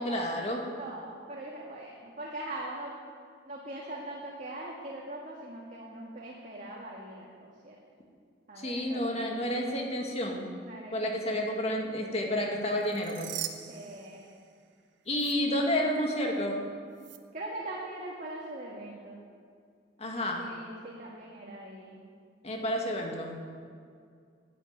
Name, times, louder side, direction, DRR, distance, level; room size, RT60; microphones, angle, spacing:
voice 1, 0.0-0.6 8.6-10.4 10.9-13.3 15.1-16.6 20.0-20.5 22.4-23.3, left 1 dB, 35° left, 0 dB, 2.0 m, -30 dB
voice 2, 0.8-2.9 3.5-7.8 8.5-9.5 10.6-11.4 13.7-14.4 17.3-19.2 20.4-22.0, right 1 dB, 45° right, -3 dB, 1.8 m, -41 dB
sound 1, 12.7-14.8 15.1-15.3 17.0-17.2, right 10 dB, 80° right, 0.9 m, -41 dB
11.0 x 9.7 x 8.9 m, 2.2 s
head